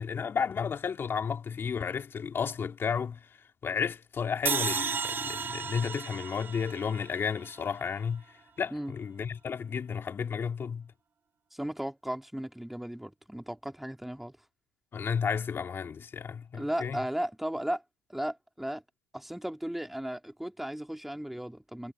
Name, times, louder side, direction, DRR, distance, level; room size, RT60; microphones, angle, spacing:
voice 1, 0.0-3.3 3.6-10.9 14.9-17.0, left 6 dB, 35° left, 2.3 m, -32 dB
sound 1, 4.5-7.7, right 6 dB, 30° right, 1.1 m, -33 dB
voice 2, 11.5-14.3 16.5-17.8 18.1-18.8 19.1-21.9, right 1 dB, 5° right, 2.7 m, -35 dB
hypercardioid pair, 75°, 7 cm